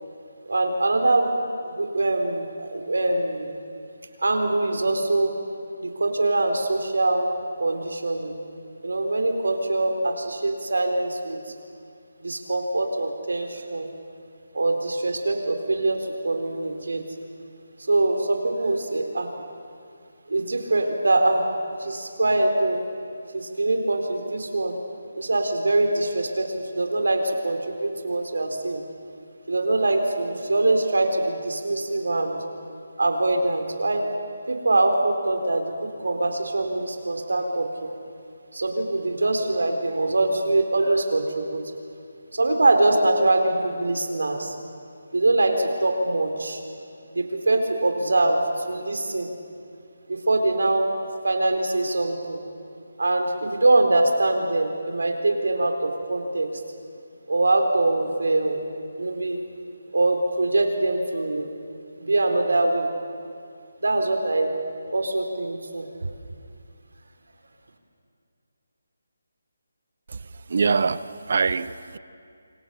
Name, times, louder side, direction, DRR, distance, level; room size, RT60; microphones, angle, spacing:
voice 1, 0.5-1.3 1.7-3.5 4.2-5.3 5.8-7.3 7.6-8.3 8.8-11.5 12.2-13.9 14.5-17.0 17.9-19.3 20.3-21.4 21.8-22.8 23.3-24.7 25.1-28.8 29.5-32.4 33.0-34.1 34.5-35.7 36.0-37.9 38.5-41.6 42.3-44.5 45.1-46.6 47.1-49.3 50.1-50.9 51.2-52.4 53.0-56.5 57.3-58.7 59.0-59.4 59.9-61.5 62.0-62.9 63.8-64.5 64.9-65.8, right 2 dB, 85° right, 5 dB, 4.2 m, -23 dB
voice 2, 70.5-72.0, right 5 dB, 50° right, 16 dB, 0.8 m, -24 dB
27.5 x 25.0 x 7.0 m, 2.4 s
hypercardioid pair, 170°, 0 cm